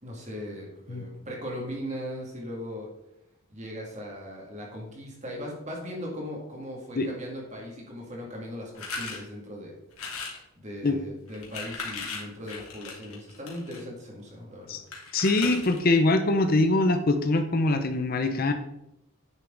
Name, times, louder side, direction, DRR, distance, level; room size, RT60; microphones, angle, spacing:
voice 1, 0.0-2.9 3.5-9.7 10.5-14.8, equal, 35° right, -1 dB, 2.4 m, -38 dB
sound 1, 8.7-9.2 9.9-10.4 11.3-13.8 14.9-15.9, left 4 dB, 90° left, 2.2 m, -37 dB
voice 2, 15.1-18.5, left 2 dB, 45° left, 8 dB, 0.7 m, -23 dB
9.2 x 6.6 x 3.9 m, 0.82 s
head